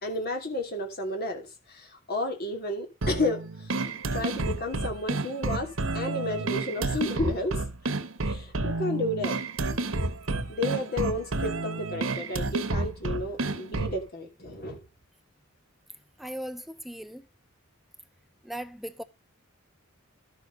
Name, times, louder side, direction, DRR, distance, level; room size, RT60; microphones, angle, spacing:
voice 1, 0.0-3.7 4.1-5.7 5.9-7.6 8.2-9.3 10.5-14.8, left 1 dB, 50° left, 2.9 m, -32 dB
sound 1, 3.0-14.0, right 2 dB, 85° right, 1.2 m, -30 dB
voice 2, 16.2-17.2 18.4-19.0, equal, ahead, 0.6 m, -38 dB
12.0 x 6.1 x 5.2 m
head